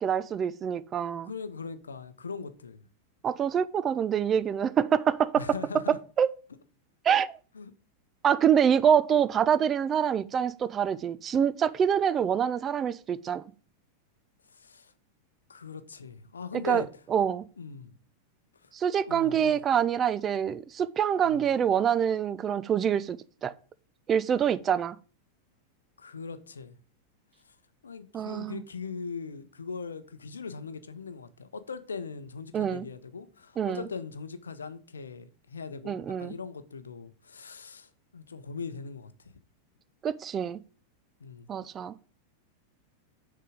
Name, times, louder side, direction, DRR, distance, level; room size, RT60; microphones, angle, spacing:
voice 1, 0.0-1.3 3.2-5.5 5.9-6.3 7.0-7.3 8.2-13.5 16.5-16.8 17.1-17.4 18.7-23.5 24.1-25.0 28.1-28.6 32.5-32.9 33.6-33.8 35.9-36.3 40.0-40.6 41.5-42.1, right 8 dB, 25° right, 0.3 m, -26 dB
voice 2, 1.2-2.9 5.4-6.0 7.5-7.7 14.5-14.9 15.5-16.9 17.6-18.0 18.6-18.7 19.0-19.6 21.2-21.5 26.0-26.8 27.5-27.6 27.8-39.3 41.2-41.5, left 5 dB, 70° left, 0.6 m, -40 dB
6.5 x 3.7 x 4.9 m
figure-of-eight pair, 90°, 0 cm